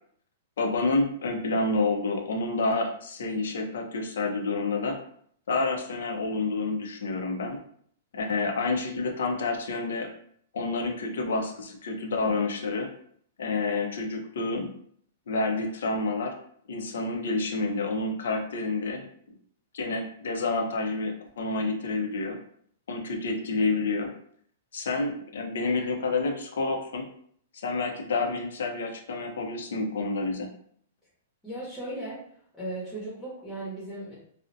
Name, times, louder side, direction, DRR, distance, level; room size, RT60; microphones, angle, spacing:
voice 1, 0.6-5.0 5.5-7.6 8.1-10.1 10.5-12.9 13.4-14.7 15.3-16.3 16.7-19.1 19.7-22.4 22.9-24.1 24.7-27.1 27.5-30.5, left 3 dB, 80° left, 3 dB, 0.5 m, -29 dB
voice 2, 31.4-32.3 32.6-34.1, right 1 dB, 5° left, -10 dB, 0.8 m, -36 dB
2.4 x 2.0 x 2.6 m, 0.62 s
hypercardioid pair, 145°, 0 cm